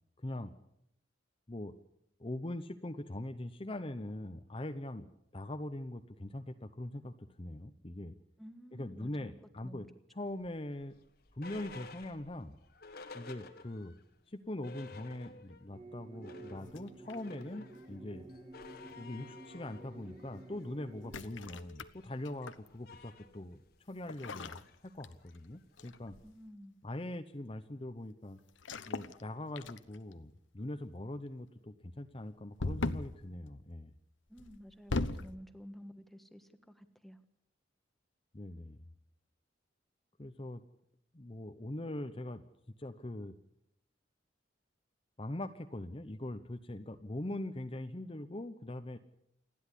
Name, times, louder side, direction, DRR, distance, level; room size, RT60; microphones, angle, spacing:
voice 1, 0.2-0.5 1.5-1.7 2.2-5.1 5.3-8.1 8.7-9.9 10.1-10.9 11.3-12.5 13.1-13.9 14.3-18.3 19.0-23.6 23.9-26.2 26.8-28.4 28.9-33.9 38.3-38.8 40.2-40.6 41.1-42.4 42.8-43.4 45.2-49.0, left 1 dB, 30° left, 8 dB, 0.8 m, -42 dB
voice 2, 8.4-9.3 9.6-9.9 26.2-26.8 34.3-37.2, equal, ahead, 8 dB, 1.4 m, -52 dB
sound 1, 10.4-14.0 14.3-14.4 14.6-15.7 16.0-26.5, left 3 dB, 55° left, 1.7 m, -54 dB
sound 2, 15.7-21.2, right 2 dB, 30° right, 1.7 m, -51 dB
sound 3, 16.7-17.4 18.6-18.9 21.0-22.7 24.1-25.5 25.8-26.1 28.6-29.2 29.6-30.1 32.6-33.2 34.4-35.3, left 2 dB, 80° left, 1.1 m, -39 dB
28.5 x 10.5 x 9.9 m, 0.79 s
head